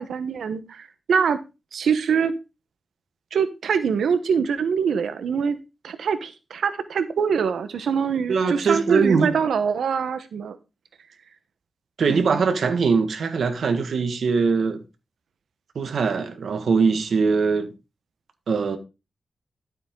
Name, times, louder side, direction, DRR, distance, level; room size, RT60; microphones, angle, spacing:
voice 1, 0.0-1.4 1.7-2.3 3.3-5.6 5.8-10.6 12.1-12.4, right 6 dB, 90° right, 1.1 m, -24 dB
voice 2, 8.3-9.3 12.0-14.8 15.7-17.7 18.5-18.8, right 5 dB, 70° right, 1.7 m, -21 dB
12.5 x 7.9 x 3.8 m
wide cardioid pair, 125°, 0 cm